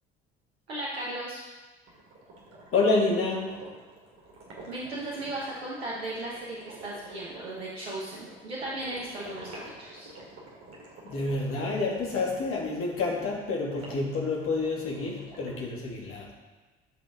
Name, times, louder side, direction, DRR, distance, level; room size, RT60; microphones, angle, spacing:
voice 1, 0.7-1.4 4.7-10.1, right 1 dB, 80° right, -5 dB, 1.3 m, -36 dB
sound 1, 1.9-12.6 13.7-15.6, right 2 dB, 45° right, 2.6 m, -49 dB
voice 2, 2.7-3.5 11.0-16.3, left 3 dB, 45° left, -2 dB, 2.3 m, -28 dB
12.5 x 5.3 x 3.6 m, 1.3 s
figure-of-eight pair, 55°, 31 cm